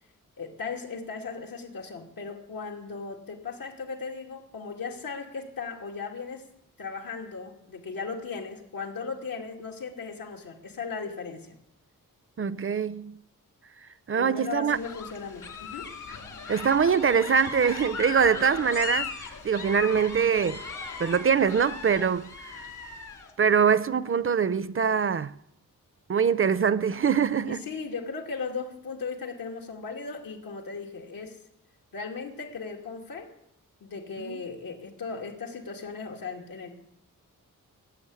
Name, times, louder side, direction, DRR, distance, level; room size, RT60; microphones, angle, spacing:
voice 1, 0.4-6.4 6.8-11.6 14.1-15.9 27.4-31.4 31.9-33.3 33.8-36.7, left 5 dB, 90° left, 2.8 m, -37 dB
voice 2, 12.4-13.2 14.1-14.8 16.5-19.1 19.4-20.6 21.0-22.6 23.4-25.3 26.1-27.6 34.2-34.4, right 6 dB, 40° right, 0.6 m, -23 dB
sound 1, 14.7-23.3, left 5 dB, 60° left, 2.4 m, -38 dB
18.5 x 7.6 x 9.7 m
wide cardioid pair, 120°, 33 cm